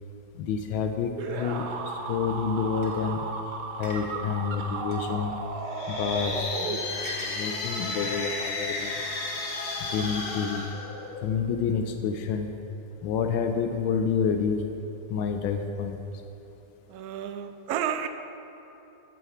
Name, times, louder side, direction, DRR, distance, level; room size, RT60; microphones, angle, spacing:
voice 1, 0.3-3.3 3.8-5.4 5.7-9.0 9.9-10.7 11.2-12.5 13.0-14.6 15.1-16.0, left 6 dB, 85° left, 5 dB, 1.4 m, -29 dB
sound 1, 1.2-7.2, right 4 dB, 65° right, 1.3 m, -35 dB
sound 2, 2.8-2.9 3.8-4.0 4.9-5.0 6.1-6.2 7.0-7.4, right 1 dB, 20° left, 1.7 m, -40 dB
sound 3, 5.6-11.5, left 3 dB, 60° left, 1.6 m, -33 dB
voice 2, 16.9-18.1, right 9 dB, 80° right, 9 dB, 0.8 m, -31 dB
9.1 x 6.5 x 6.8 m, 3.0 s
omnidirectional pair, 2.1 m